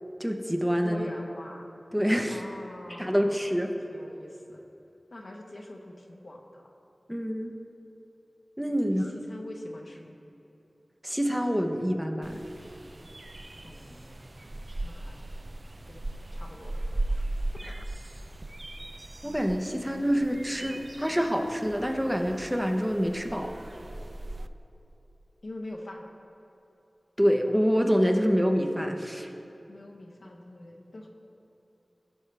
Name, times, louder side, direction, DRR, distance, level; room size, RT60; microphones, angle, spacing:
voice 1, 0.2-1.1 1.9-2.4 3.0-3.7 7.1-7.5 8.6-9.1 11.0-12.4 17.6-17.7 19.2-23.5 27.2-29.3, equal, 5° right, 4 dB, 0.8 m, -26 dB
voice 2, 0.8-1.7 2.3-3.6 3.9-4.6 5.1-6.7 8.8-10.1 13.6-14.3 14.8-15.2 15.9-16.0 16.3-16.7 17.0-17.2 25.4-26.0 29.7-31.1, left 1 dB, 70° left, 0 dB, 1.1 m, -43 dB
sound 1, 12.2-24.5, right 2 dB, 45° right, 0.3 m, -38 dB
16.0 x 5.5 x 3.4 m, 3.0 s
cardioid pair, 40°, 0 cm